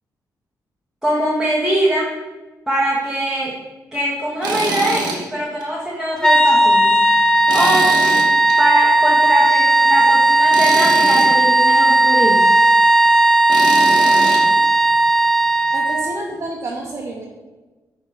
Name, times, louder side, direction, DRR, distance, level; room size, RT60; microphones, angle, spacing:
voice 1, 1.0-2.1 2.7-3.5 3.9-7.1 7.5-8.0 8.6-12.4, right 1 dB, 5° right, -5 dB, 1.1 m, -22 dB
Tools, 4.4-5.2 5.6-5.7 7.5-8.5 10.5-11.3 13.5-14.4, right 3 dB, 85° right, 1.4 m, -24 dB
sound 1, 6.2-16.2, right 2 dB, 10° left, 0.5 m, -15 dB
voice 2, 15.7-17.2, right 2 dB, 40° right, -3 dB, 1.0 m, -29 dB
10.5 x 3.9 x 4.0 m, 1.2 s
cardioid pair, 130°, 7 cm